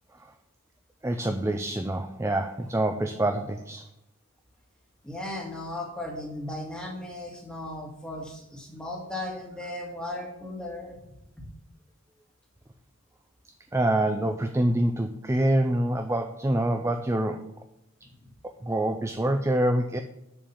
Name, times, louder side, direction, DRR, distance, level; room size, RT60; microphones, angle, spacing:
voice 1, 1.0-3.8 13.7-17.5 18.6-20.0, right 1 dB, 15° right, 6 dB, 0.4 m, -26 dB
voice 2, 5.0-11.0 11.4-11.5 18.2-18.3, left 1 dB, 5° left, -1 dB, 1.9 m, -36 dB
7.1 x 5.3 x 7.0 m, 0.84 s
head